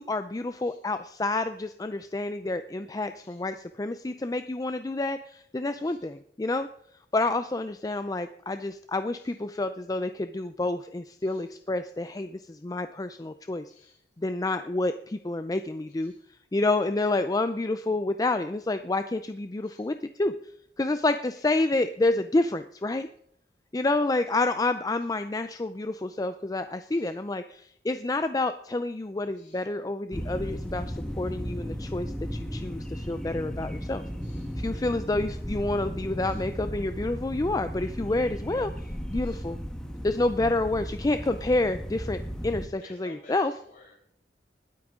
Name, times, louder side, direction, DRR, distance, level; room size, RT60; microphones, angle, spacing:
voice 1, 0.0-6.7 7.1-13.6 14.2-16.1 16.5-20.3 20.8-23.1 23.7-34.0 34.6-38.7 39.1-39.6 40.0-43.5, left 2 dB, 20° left, 10 dB, 0.4 m, -29 dB
voice 2, 0.6-0.9 3.2-3.4 5.8-6.0 9.2-9.4 11.2-11.5 13.7-14.0 16.0-16.3 19.6-19.9 21.3-21.4 26.9-27.1 29.3-29.7 34.2-34.8 36.2-36.4 39.2-39.5 42.8-43.9, left 3 dB, 50° left, -3 dB, 6.2 m, -56 dB
sound 1, 30.1-42.7, equal, 5° left, 1.3 m, -35 dB
20.5 x 8.7 x 3.7 m, 0.68 s
head